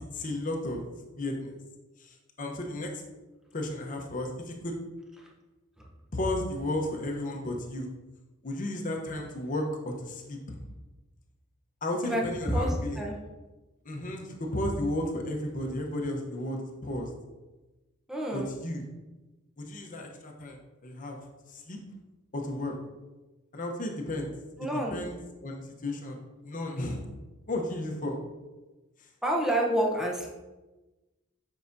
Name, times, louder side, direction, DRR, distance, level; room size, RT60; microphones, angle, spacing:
voice 1, 0.1-0.8 1.2-1.6 2.0-2.9 3.5-4.7 6.1-7.9 8.4-10.4 11.8-13.0 13.8-17.1 18.3-18.8 19.6-21.2 21.5-21.8 22.3-22.7 23.5-24.3 24.6-26.2 26.4-27.0 27.5-28.2, left 1 dB, 40° left, 2 dB, 0.9 m, -33 dB
voice 2, 12.5-13.2 18.1-18.5 24.6-25.0 29.2-30.3, right 1 dB, 5° right, -1 dB, 0.8 m, -28 dB
7.4 x 4.9 x 2.7 m, 1.1 s
head